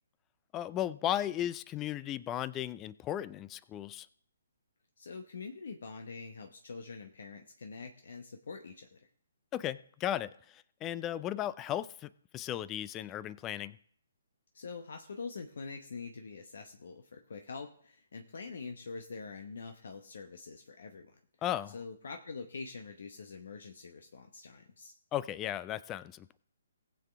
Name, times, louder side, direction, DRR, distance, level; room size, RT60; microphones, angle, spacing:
voice 1, 0.5-4.1 9.5-13.8 21.4-21.7 25.1-26.4, left 12 dB, 20° left, 18 dB, 0.4 m, -36 dB
voice 2, 5.0-9.0 14.5-21.2 21.7-24.9, left 4 dB, 55° left, 4 dB, 1.0 m, -45 dB
19.5 x 7.3 x 3.5 m, 0.62 s
figure-of-eight pair, 130°, 0 cm